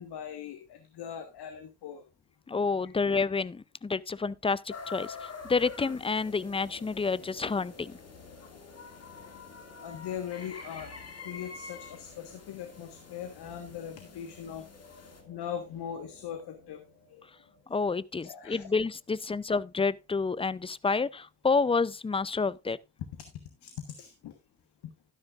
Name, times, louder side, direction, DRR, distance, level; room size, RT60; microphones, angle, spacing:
voice 1, 0.0-2.0 2.5-2.6 8.4-8.6 9.2-9.3 9.8-10.9 11.2-14.6 15.0-16.8 17.1-17.2 18.2-18.7 23.6-24.3, left 9 dB, 60° left, 1.5 m, -40 dB
voice 2, 2.5-8.0 17.7-22.8, left 4 dB, 15° left, 0.5 m, -29 dB
sound 1, 4.7-15.2, left 4 dB, 35° left, 2.7 m, -47 dB
sound 2, 5.4-19.1, left 4 dB, 90° left, 2.1 m, -54 dB
12.0 x 11.0 x 2.5 m
hypercardioid pair, 40°, 44 cm